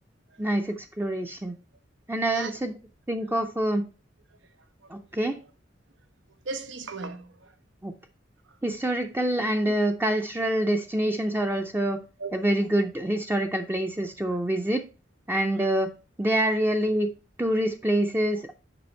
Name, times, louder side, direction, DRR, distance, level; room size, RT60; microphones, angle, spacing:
voice 1, 0.4-1.5 2.1-2.7 3.1-3.8 4.9-5.4 7.8-7.9 8.6-12.0 12.3-14.9 15.3-15.9 16.2-17.1 17.4-18.5, right 1 dB, 10° right, 0.5 m, -26 dB
voice 2, 6.4-7.6 8.4-8.6 8.9-9.0 9.6-9.7 11.2-11.3 12.2-12.3 15.5-15.7, right 4 dB, 90° right, 0.8 m, -38 dB
6.9 x 5.2 x 4.3 m
head